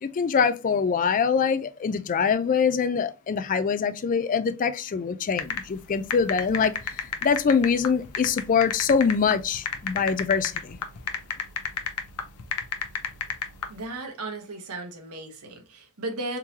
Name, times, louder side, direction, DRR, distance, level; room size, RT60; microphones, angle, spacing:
voice 1, 0.0-10.8, left 6 dB, 35° left, 0.3 m, -24 dB
sound 1, 5.4-13.7, left 7 dB, 85° left, 0.7 m, -31 dB
voice 2, 13.7-16.4, right 2 dB, 80° right, 0.9 m, -35 dB
3.7 x 2.9 x 2.7 m
head